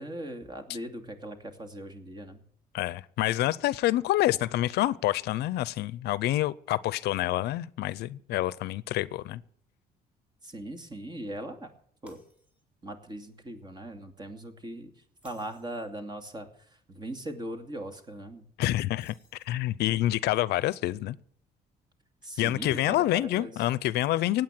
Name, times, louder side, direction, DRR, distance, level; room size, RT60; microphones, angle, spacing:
voice 1, 0.0-2.4 10.4-11.7 12.0-12.2 12.8-14.9 15.2-16.5 16.9-18.4 22.2-23.5, right 1 dB, 25° right, 2.5 m, -39 dB
voice 2, 2.7-9.4 18.6-19.1 19.4-21.2 22.4-24.4, left 15 dB, 75° left, 0.6 m, -27 dB
Shatter, 12.1-12.8 13.3-13.5 15.1-15.9 18.9-19.8, left 1 dB, 10° right, 4.1 m, -61 dB
16.5 x 9.3 x 7.5 m
cardioid pair, 110°, 17 cm